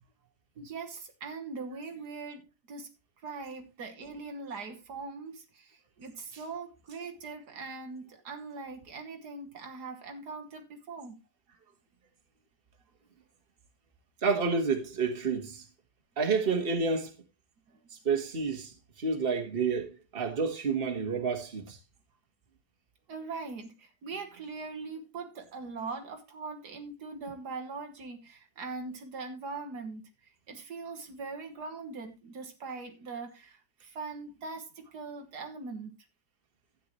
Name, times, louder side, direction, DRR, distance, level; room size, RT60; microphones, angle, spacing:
voice 1, 0.6-2.9 3.2-11.2 17.7-17.8 23.1-30.1 30.5-35.9, right 4 dB, 85° right, 2.1 m, -41 dB
voice 2, 14.2-15.6 16.2-17.1 18.0-18.7 19.0-21.8, right 4 dB, 35° right, 1.7 m, -29 dB
12.5 x 9.0 x 3.1 m
omnidirectional pair, 1.7 m